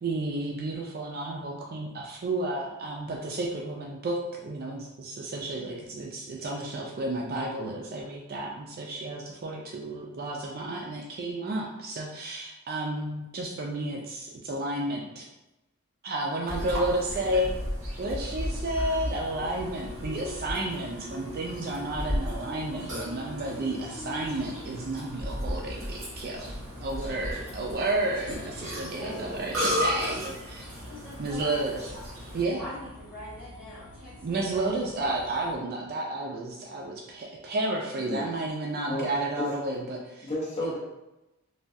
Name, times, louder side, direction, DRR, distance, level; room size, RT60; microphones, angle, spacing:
voice 1, 0.0-15.2 16.0-17.5 18.0-26.5 26.8-30.2 30.5-30.6 31.2-31.8 32.3-32.6 34.2-40.3 40.6-40.8, right 2 dB, 45° right, -1 dB, 0.4 m, -32 dB
Burping eructation, 16.5-32.4, equal, 65° right, 1.5 m, -35 dB
sound 1, 19.1-35.6, left 1 dB, 90° left, 0.5 m, -49 dB
sound 2, 19.3-26.6, left 1 dB, 10° left, 0.9 m, -45 dB
voice 2, 29.0-29.3 30.0-30.5 30.9-32.0 32.6-34.7, equal, 5° right, -11 dB, 1.5 m, -43 dB
voice 3, 40.2-40.8, left 1 dB, 30° left, -5 dB, 0.6 m, -31 dB
3.2 x 2.3 x 2.6 m, 0.96 s
head